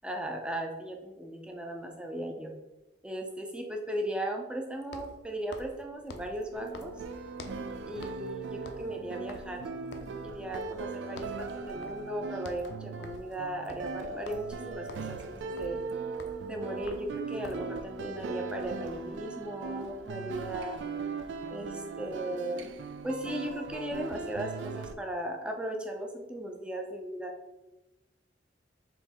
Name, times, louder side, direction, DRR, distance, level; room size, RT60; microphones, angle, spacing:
voice 1, 0.0-2.5 3.0-6.9 7.9-9.6 10.2-15.8 16.5-20.8 21.5-22.7 23.0-27.3, right 1 dB, 5° right, 2 dB, 0.5 m, -37 dB
sound 1, 1.5-1.6 4.8-7.7 8.0-8.3 8.6-10.9 11.2-11.5 11.8-12.1 12.4-17.8, left 2 dB, 65° left, 0.5 m, -48 dB
sound 2, 6.5-24.9, right 4 dB, 85° right, 0.4 m, -39 dB
4.5 x 3.0 x 3.6 m, 1.0 s
head